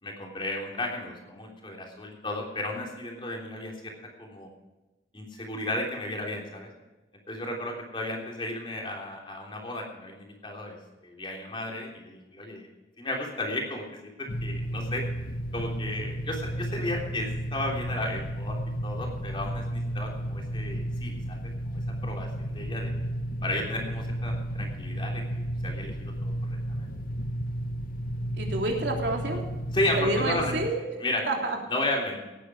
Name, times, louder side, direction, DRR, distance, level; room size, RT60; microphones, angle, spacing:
voice 1, 0.0-3.9 4.2-4.5 5.1-6.7 7.3-10.8 11.0-12.7 13.0-15.0 15.5-22.9 23.4-26.9 29.7-30.6 31.0-31.2 31.7-32.2, left 1 dB, 30° left, 0 dB, 3.3 m, -34 dB
sound 1, 14.3-30.7, equal, 50° left, 0.8 m, -33 dB
voice 2, 28.3-29.4 30.0-30.8 31.3-31.6, right 2 dB, 75° right, 1 dB, 3.2 m, -28 dB
18.5 x 9.9 x 4.9 m, 1.1 s
head